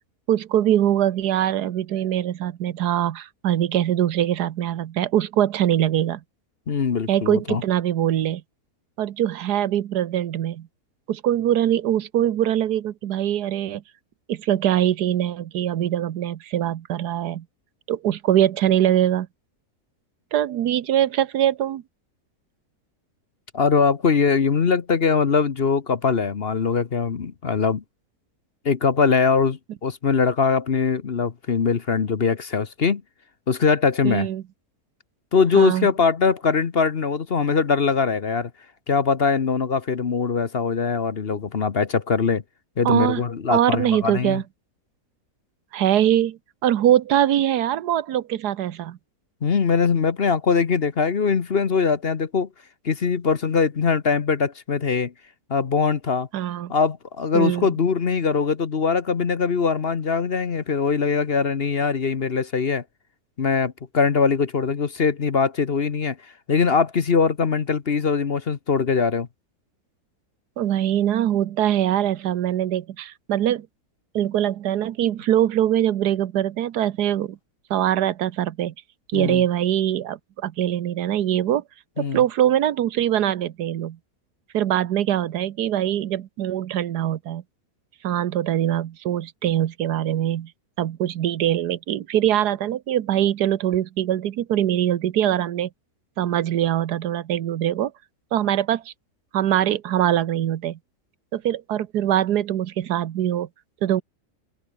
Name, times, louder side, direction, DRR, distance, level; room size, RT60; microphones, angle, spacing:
voice 1, 0.3-6.2 7.1-8.4 9.0-10.7 11.1-13.8 14.3-17.4 17.9-19.3 20.3-21.8 34.0-34.4 35.5-35.9 42.8-43.2 43.5-44.4 45.7-49.0 56.3-56.7 57.3-57.7 70.6-73.7 74.1-77.4 77.7-78.7 79.1-81.6 82.0-84.0 84.5-87.4 88.0-90.5 90.8-95.7 96.2-97.9 98.3-98.9 99.3-100.8 101.3-103.5 103.8-104.0, right 11 dB, 85° right, 1.5 m, -22 dB
voice 2, 6.7-7.6 23.5-27.8 28.6-33.0 33.5-34.3 35.3-38.5 38.9-42.4 42.8-44.4 49.4-52.5 52.8-55.1 55.5-56.3 56.7-62.8 63.4-66.2 66.5-69.3 79.1-79.4 82.0-82.2, left 5 dB, 40° left, 1.2 m, -22 dB
open air
omnidirectional pair, 1.7 m